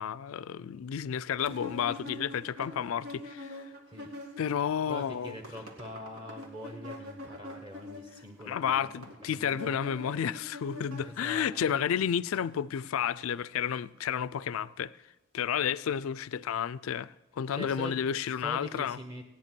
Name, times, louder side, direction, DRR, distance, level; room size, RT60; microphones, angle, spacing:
voice 1, 0.0-3.6 4.4-5.4 8.5-14.9 15.3-19.0, left 8 dB, 65° left, 0.4 m, -31 dB
sound 1, 1.4-4.6 4.9-11.5, left 1 dB, 85° right, 2.2 m, -44 dB
voice 2, 4.9-8.9 9.3-9.8 11.0-11.8 17.5-18.0 18.4-19.2, equal, 20° right, 1.0 m, -43 dB
16.5 x 9.7 x 6.0 m
head